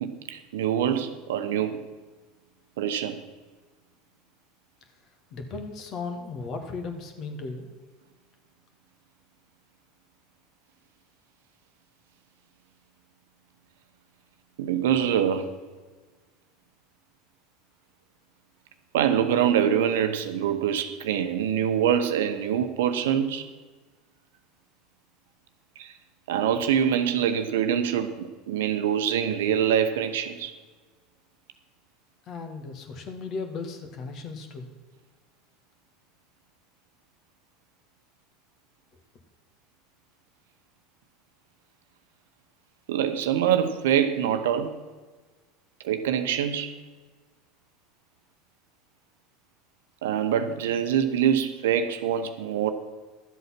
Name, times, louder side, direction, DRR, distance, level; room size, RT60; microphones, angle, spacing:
voice 1, 0.0-1.8 2.8-3.2 14.6-15.5 18.9-23.5 25.8-25.9 26.3-30.5 42.9-44.7 45.8-46.7 50.0-52.7, right 9 dB, 70° right, 9 dB, 0.9 m, -25 dB
voice 2, 5.3-7.8 32.3-34.7, left 4 dB, 45° left, 6 dB, 1.8 m, -36 dB
12.0 x 7.8 x 5.9 m, 1.4 s
hypercardioid pair, 75°, 0 cm